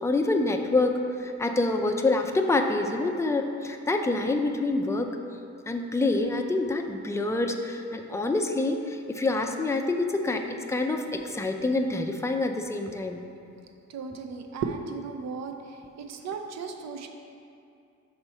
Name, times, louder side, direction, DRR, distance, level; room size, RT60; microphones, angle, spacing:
voice 1, 0.0-5.1 5.7-10.4 10.7-13.2, left 2 dB, 10° left, 3 dB, 0.4 m, -26 dB
voice 2, 13.9-15.5 16.0-17.1, right 5 dB, 60° right, 5 dB, 0.6 m, -35 dB
6.0 x 4.3 x 5.5 m, 2.5 s
cardioid pair, 120°, 30 cm